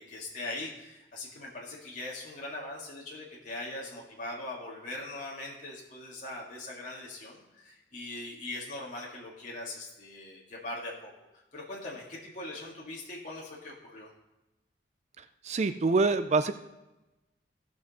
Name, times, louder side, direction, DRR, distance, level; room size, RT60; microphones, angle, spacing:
voice 1, 0.0-11.1 11.5-14.1, left 2 dB, 45° left, -4 dB, 1.9 m, -41 dB
voice 2, 15.4-16.5, right 3 dB, 40° right, 11 dB, 0.4 m, -25 dB
16.5 x 6.1 x 4.1 m, 1.0 s
head